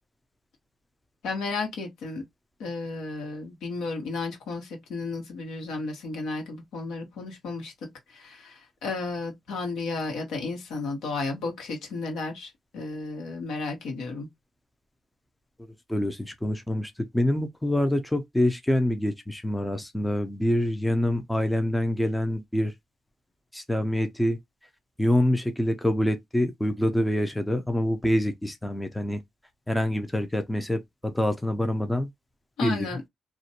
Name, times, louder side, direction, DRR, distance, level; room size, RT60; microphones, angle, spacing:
voice 1, 1.2-2.2 2.6-7.7 8.1-14.3 32.6-33.0, left 3 dB, 80° left, 1.2 m, -33 dB
voice 2, 15.9-22.7 23.5-24.4 25.0-29.2 29.7-32.1 32.6-32.9, left 1 dB, 5° left, 0.5 m, -26 dB
2.4 x 2.1 x 2.7 m
cardioid pair, 90°, 0 cm